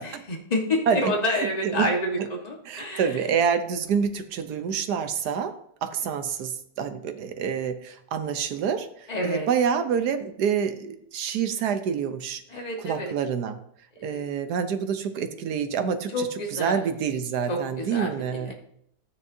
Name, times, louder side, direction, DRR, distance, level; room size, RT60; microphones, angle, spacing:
voice 1, 0.0-3.1 9.1-9.5 12.5-13.1 14.0-14.2 16.1-16.8 17.5-18.1 18.4-18.5, left 1 dB, 25° left, 0 dB, 1.5 m, -28 dB
voice 2, 0.9-1.9 2.2-2.3 2.7-5.5 5.8-12.4 12.8-13.6 14.0-18.5, right 7 dB, 70° right, 9 dB, 1.3 m, -27 dB
12.5 x 9.2 x 2.7 m, 0.72 s
omnidirectional pair, 1.9 m